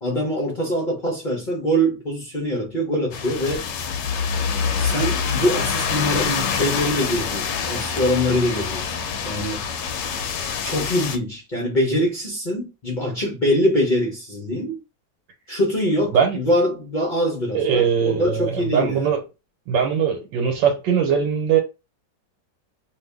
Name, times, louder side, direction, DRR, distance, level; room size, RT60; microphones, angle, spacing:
voice 1, 0.0-3.6 4.5-8.9 9.2-9.6 10.6-14.8 15.5-19.1, equal, 40° left, 0.7 m, -23 dB
sound 1, 3.1-11.2, left 6 dB, 75° left, 1.2 m, -26 dB
voice 2, 17.5-19.2 19.7-21.6, right 7 dB, 80° right, 1.5 m, -20 dB
2.8 x 2.7 x 3.3 m
omnidirectional pair, 2.0 m